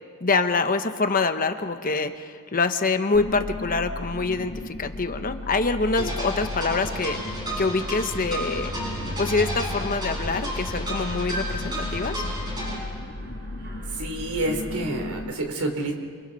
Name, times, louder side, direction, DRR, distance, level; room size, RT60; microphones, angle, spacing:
voice 1, 0.2-8.7 9.2-12.2, left 3 dB, 40° left, 8 dB, 1.0 m, -25 dB
sound 1, 3.1-15.3, left 2 dB, 85° left, 2.1 m, -35 dB
sound 2, 6.0-12.8, equal, 20° right, 6.7 m, -32 dB
Mechanisms, 8.4-15.2, right 1 dB, 50° right, 2.7 m, -42 dB
voice 2, 14.0-15.9, right 1 dB, 85° right, 3 dB, 3.4 m, -28 dB
28.0 x 27.5 x 4.1 m, 2.1 s
head